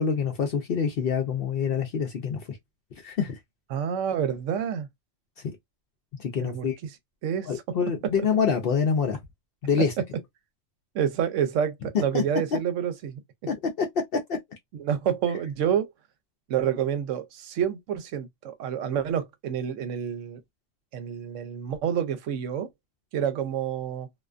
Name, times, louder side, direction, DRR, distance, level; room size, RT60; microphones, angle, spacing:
voice 1, 0.0-2.6 3.0-3.4 6.2-6.8 7.5-9.2 9.6-9.9 11.9-12.2 13.5-13.9 14.1-14.4, left 6 dB, 60° left, 0.6 m, -26 dB
voice 2, 3.7-4.9 6.4-6.7 7.2-7.5 9.8-9.9 10.9-13.2 14.7-15.9 16.5-20.4 20.9-22.7 23.1-24.1, right 8 dB, 75° right, 0.9 m, -28 dB
2.4 x 2.2 x 2.4 m
omnidirectional pair, 1.3 m